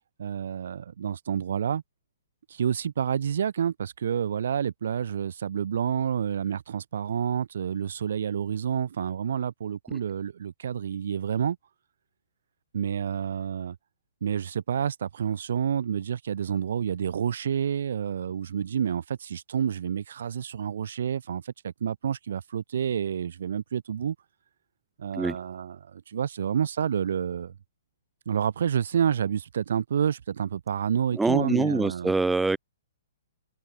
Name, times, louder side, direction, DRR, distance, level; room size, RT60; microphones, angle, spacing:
voice 1, 0.2-1.8 2.5-11.6 12.7-13.8 14.2-24.2 25.0-27.5 28.3-32.1, right 8 dB, 65° right, 6.9 m, -29 dB
voice 2, 31.1-32.6, right 3 dB, 5° right, 0.5 m, -24 dB
hypercardioid pair, 170°, 0 cm